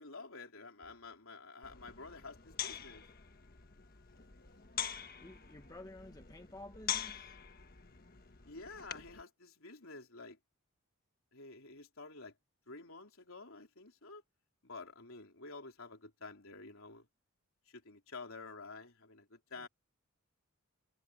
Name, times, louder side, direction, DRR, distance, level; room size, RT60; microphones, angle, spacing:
voice 1, 0.0-3.0 8.5-10.4 11.3-12.3 12.7-14.2 14.6-17.1 17.7-19.7, left 3 dB, 65° left, 3.7 m, -50 dB
sound 1, 1.6-9.2, left 9 dB, 45° left, 1.4 m, -44 dB
voice 2, 5.2-7.4 19.5-19.7, left 1 dB, 15° left, 1.2 m, -52 dB
head